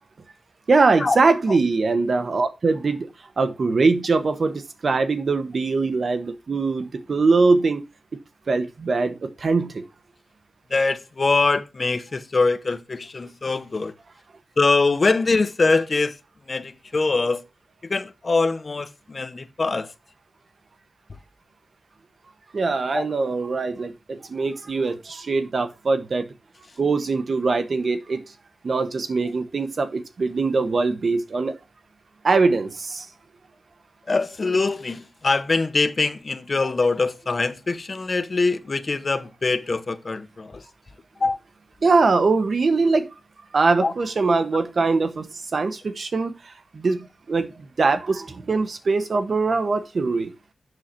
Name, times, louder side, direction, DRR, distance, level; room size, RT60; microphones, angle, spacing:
voice 1, 0.7-3.1 3.4-7.8 8.5-9.7 22.5-26.2 26.8-28.2 28.6-31.5 32.2-33.1 41.8-43.1 43.5-46.3 46.7-47.0 47.3-47.5 47.8-50.3, right 3 dB, 55° right, 0.9 m, -22 dB
voice 2, 10.7-13.9 14.6-16.2 16.5-17.4 17.8-19.9 22.9-23.1 34.1-40.6 41.2-41.4 43.8-43.9, left 3 dB, 40° left, 0.8 m, -23 dB
7.9 x 6.4 x 4.3 m
wide cardioid pair, 100°, 0 cm